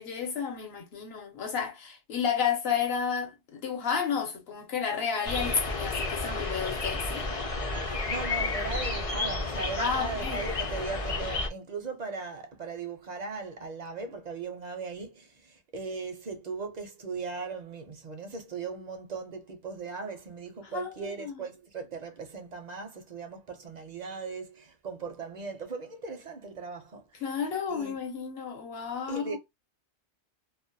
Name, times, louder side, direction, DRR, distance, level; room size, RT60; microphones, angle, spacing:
voice 1, 0.0-7.3 9.8-10.4 20.7-21.3 27.2-29.4, left 6 dB, 65° left, 0.9 m, -31 dB
sound 1, 5.2-11.5, left 3 dB, 40° left, 0.5 m, -31 dB
voice 2, 8.1-27.4 27.7-28.0 29.1-29.4, right 4 dB, 55° right, 0.5 m, -38 dB
2.3 x 2.1 x 2.5 m
omnidirectional pair, 1.1 m